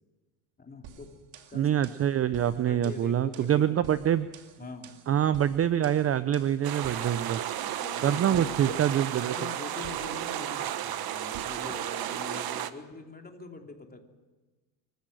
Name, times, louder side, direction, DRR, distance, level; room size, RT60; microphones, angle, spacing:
voice 1, 0.6-1.1 1.5-1.8 2.6-4.0 4.6-4.9 7.6-14.0, left 4 dB, 20° left, 3 dB, 2.9 m, -44 dB
sound 1, 0.8-12.7, right 8 dB, 60° right, 2.6 m, -51 dB
voice 2, 1.5-4.3 5.1-7.4 8.0-9.5, right 10 dB, 30° right, 14 dB, 0.6 m, -25 dB
sound 2, 6.6-12.7, right 11 dB, 45° right, 1.2 m, -33 dB
25.0 x 15.0 x 7.9 m, 1.3 s
supercardioid pair, 105°, 50 cm